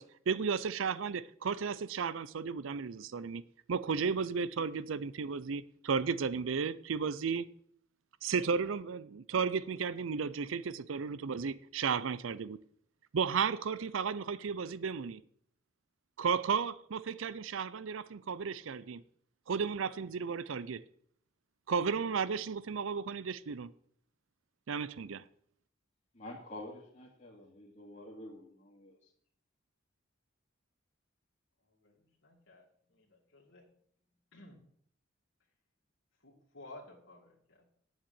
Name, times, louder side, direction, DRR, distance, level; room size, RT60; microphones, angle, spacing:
voice 1, 0.0-3.4 3.7-7.5 8.2-12.6 13.1-15.2 16.2-19.0 19.5-20.8 21.7-23.7 24.7-25.2, right 5 dB, 80° right, 0.5 m, -34 dB
voice 2, 26.1-29.0, left 1 dB, 35° left, 2.1 m, -48 dB
voice 3, 31.8-32.6 32.9-33.7 34.3-34.6 36.2-37.7, left 2 dB, 75° left, 2.5 m, -54 dB
8.7 x 7.4 x 8.7 m
head